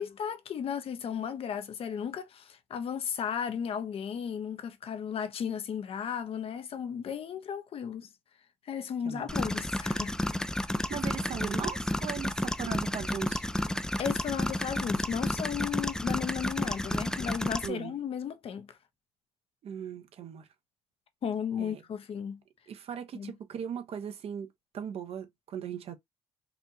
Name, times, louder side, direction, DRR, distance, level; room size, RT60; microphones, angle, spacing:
voice 1, 0.0-8.1 8.7-10.1 10.7-10.8 14.0-18.8 21.2-22.4 23.1-23.3, left 8 dB, 55° left, 0.8 m, -35 dB
sound 1, 9.3-17.7, left 1 dB, 5° left, 0.4 m, -31 dB
voice 2, 10.9-13.4 17.6-17.9 19.6-20.5 21.6-21.8 22.7-26.0, right 8 dB, 55° right, 0.9 m, -38 dB
4.2 x 2.6 x 2.8 m
supercardioid pair, 80°, 12 cm